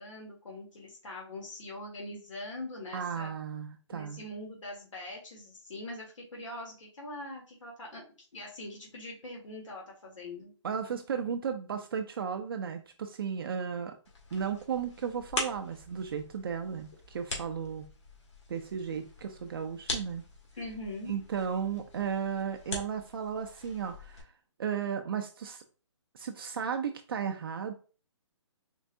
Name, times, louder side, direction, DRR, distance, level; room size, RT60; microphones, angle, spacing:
voice 1, 0.0-3.3 3.9-8.0 8.3-10.5 20.6-21.1, left 1 dB, 90° left, -2 dB, 1.7 m, -42 dB
voice 2, 2.9-4.2 10.6-14.0 14.3-17.9 18.5-20.3 21.1-24.3 24.6-25.6 26.1-27.7, right 7 dB, 50° right, 5 dB, 0.4 m, -34 dB
sound 1, 14.0-24.2, left 2 dB, 65° left, 1.6 m, -42 dB
4.5 x 3.2 x 2.6 m, 0.37 s
hypercardioid pair, 160°, 16 cm